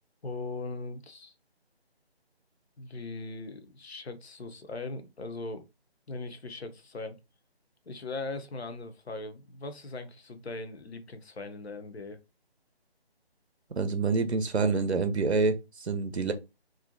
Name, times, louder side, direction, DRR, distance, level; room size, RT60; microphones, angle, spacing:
voice 1, 0.2-1.3 2.8-5.7 6.1-7.2 7.9-12.2, left 3 dB, 80° left, 0.6 m, -39 dB
voice 2, 13.8-16.3, right 4 dB, 90° right, 0.5 m, -27 dB
2.5 x 2.1 x 2.6 m
figure-of-eight pair, 150°, 32 cm